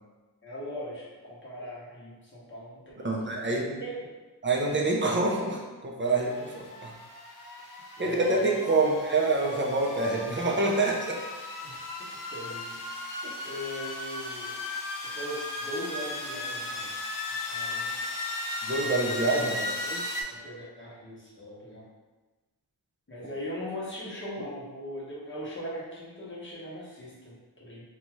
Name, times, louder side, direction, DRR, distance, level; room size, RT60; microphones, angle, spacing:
voice 1, 0.4-4.0 8.0-9.0 11.6-11.8 12.3-13.1 13.4-14.5 15.0-16.9 17.5-18.0 20.1-21.9 23.1-27.9, equal, 30° left, -8 dB, 0.8 m, -40 dB
voice 2, 3.0-3.8 4.4-6.9 8.0-11.2 13.2-13.5 18.6-20.1, right 2 dB, 30° right, -1 dB, 0.5 m, -27 dB
sound 1, 6.0-20.2, left 2 dB, 50° left, 0.6 m, -36 dB
2.6 x 2.3 x 3.0 m, 1.2 s
wide cardioid pair, 90°, 41 cm